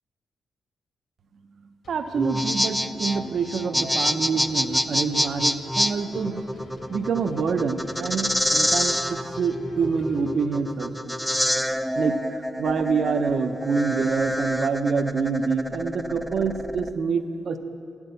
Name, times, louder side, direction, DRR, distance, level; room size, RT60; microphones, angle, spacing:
sound 1, 1.8-11.2 11.7-11.8, left 2 dB, 60° left, 1.6 m, -47 dB
voice 1, 1.9-6.5 6.9-11.2 12.0-17.6, right 5 dB, 60° right, 10 dB, 0.6 m, -26 dB
sound 2, 2.1-16.9, equal, ahead, 0.3 m, -27 dB
8.5 x 8.1 x 8.0 m, 2.6 s
wide cardioid pair, 135°, 0 cm